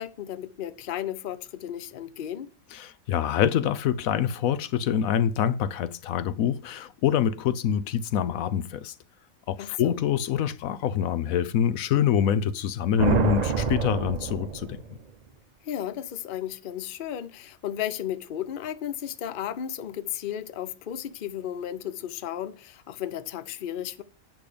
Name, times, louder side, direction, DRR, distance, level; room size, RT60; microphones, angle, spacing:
voice 1, 0.0-2.5 9.6-10.0 15.6-24.0, left 10 dB, 50° left, 0.7 m, -34 dB
voice 2, 2.7-8.9 9.5-14.8, left 9 dB, 85° left, 1.1 m, -25 dB
sound 1, 13.0-15.1, right 5 dB, 40° right, 0.6 m, -26 dB
8.6 x 6.0 x 5.0 m
omnidirectional pair, 1.4 m